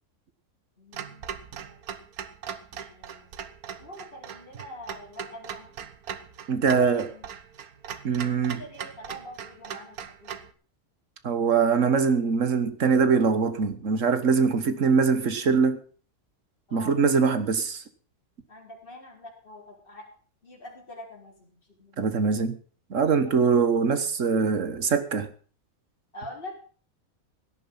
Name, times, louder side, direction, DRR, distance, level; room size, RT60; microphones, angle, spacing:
voice 1, 0.8-1.2 1.6-1.8 2.9-3.3 3.8-5.7 6.7-7.3 8.2-10.3 16.7-17.0 18.5-20.1 20.4-22.2 23.2-23.4 26.1-26.6, left 1 dB, 40° left, 4.7 m, -44 dB
Clock, 0.9-10.5, right 8 dB, 85° right, 1.5 m, -40 dB
voice 2, 6.5-7.1 8.0-8.6 11.2-15.8 16.7-17.8 22.0-22.6 22.9-25.3, right 5 dB, 60° right, 1.7 m, -23 dB
17.5 x 10.0 x 5.6 m
omnidirectional pair, 1.5 m